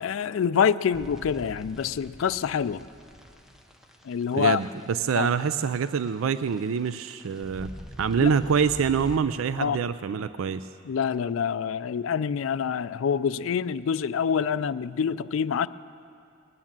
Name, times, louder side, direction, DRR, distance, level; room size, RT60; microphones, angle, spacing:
voice 1, 0.0-2.8 4.0-4.6 5.1-5.3 8.2-8.3 9.6-9.8 10.9-15.7, left 7 dB, 75° left, 14 dB, 0.4 m, -26 dB
sound 1, 0.9-9.2, equal, ahead, 0.8 m, -45 dB
voice 2, 4.3-7.7 8.0-10.7, right 6 dB, 85° right, 13 dB, 0.4 m, -25 dB
20.0 x 9.6 x 7.4 m, 2.6 s
head